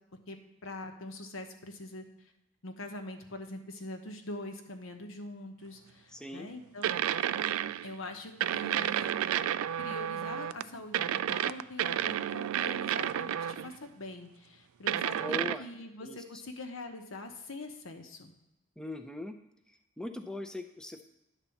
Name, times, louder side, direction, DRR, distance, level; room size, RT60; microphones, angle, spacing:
voice 1, 0.3-2.0 2.6-7.0 7.8-9.1 9.8-18.3, left 2 dB, 80° left, 5 dB, 1.1 m, -43 dB
voice 2, 6.1-6.5 15.2-15.6 16.0-16.2 18.8-19.4 20.0-21.0, left 1 dB, 5° left, 6 dB, 0.5 m, -39 dB
sound 1, 6.8-7.9 8.4-10.6 10.9-13.8 14.9-15.6, right 10 dB, 90° right, 0.3 m, -31 dB
10.0 x 4.1 x 7.1 m, 0.89 s
head